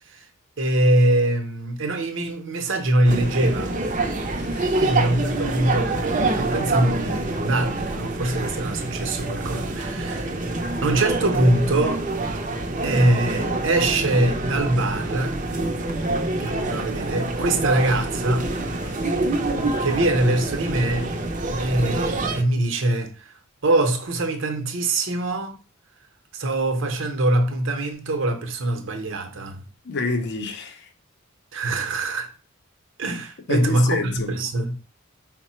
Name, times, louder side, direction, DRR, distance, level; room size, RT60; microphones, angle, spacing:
voice 1, 0.6-3.8 4.7-10.4 10.8-12.0 12.8-15.4 16.4-18.5 19.8-21.1 21.6-25.6 26.3-29.7 31.5-32.3 33.0-34.8, right 1 dB, 65° right, 0.8 m, -23 dB
sound 1, 3.1-22.4, right 2 dB, 40° right, 0.6 m, -26 dB
voice 2, 4.3-4.8 18.9-19.1 29.8-30.9 33.5-34.3, left 3 dB, 55° left, 0.5 m, -28 dB
4.6 x 2.1 x 4.3 m
head